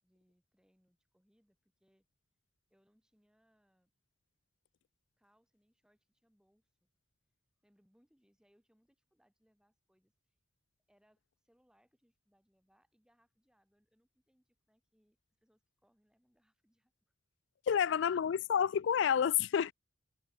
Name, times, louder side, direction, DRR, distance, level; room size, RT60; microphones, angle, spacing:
voice 1, 0.0-2.1 2.7-3.9 5.2-6.9 7.6-10.3 10.9-16.9, equal, 5° right, 6.2 m, -74 dB
voice 2, 17.7-19.7, left 8 dB, 60° left, 0.3 m, -29 dB
head